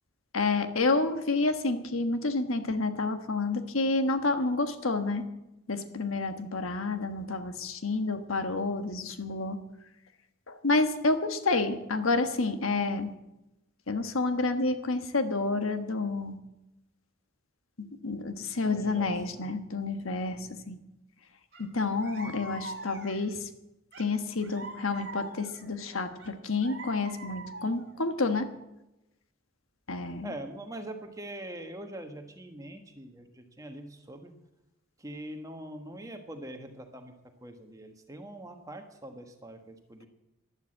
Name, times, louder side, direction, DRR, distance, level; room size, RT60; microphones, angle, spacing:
voice 1, 0.3-5.3 5.7-9.6 10.5-13.1 13.9-16.4 17.8-20.8 21.6-23.4 24.0-28.5 29.9-30.3, left 3 dB, 80° left, 8 dB, 1.4 m, -29 dB
voice 2, 18.6-19.5 20.3-20.7 30.2-34.3 35.0-37.1 37.4-40.1, right 1 dB, 15° right, 5 dB, 1.4 m, -43 dB
sound 1, 21.5-21.7 22.0-23.4 23.9-25.7 26.2-28.0, right 2 dB, 50° right, 2.0 m, -44 dB
12.0 x 11.5 x 7.8 m, 0.94 s
head